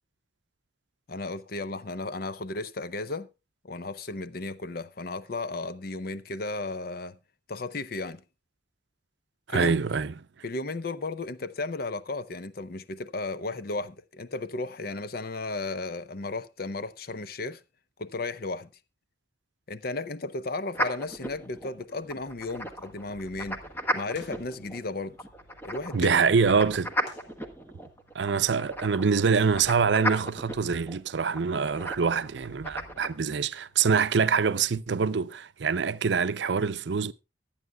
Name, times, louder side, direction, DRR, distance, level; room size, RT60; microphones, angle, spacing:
voice 1, 1.1-3.3 3.6-7.2 7.5-8.2 9.5-9.8 10.4-17.6 18.0-18.7 19.7-23.6 23.9-25.2 25.6-26.2, left 2 dB, 55° left, 0.7 m, -34 dB
voice 2, 9.5-10.1 25.9-26.9 28.1-37.1, right 5 dB, 70° right, 0.6 m, -25 dB
sound 1, 20.7-33.1, equal, 10° left, 1.3 m, -36 dB
sound 2, 21.9-33.9, left 1 dB, 80° left, 3.5 m, -60 dB
23.5 x 8.9 x 2.3 m
head